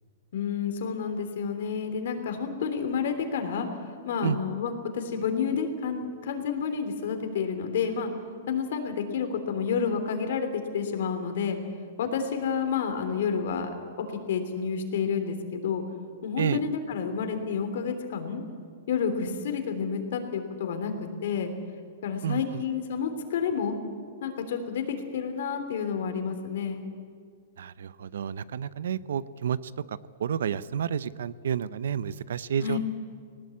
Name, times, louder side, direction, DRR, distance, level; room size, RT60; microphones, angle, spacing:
voice 1, 0.3-3.7 4.0-8.1 8.5-11.6 12.0-15.8 16.2-18.4 18.9-20.9 21.2-21.5 22.0-23.7 24.2-26.8 32.6-32.8, left 6 dB, 65° left, 7 dB, 3.3 m, -30 dB
voice 2, 22.2-22.6 27.6-32.8, right 8 dB, 80° right, 17 dB, 0.7 m, -30 dB
19.0 x 19.0 x 8.5 m, 2.1 s
hypercardioid pair, 155°, 0 cm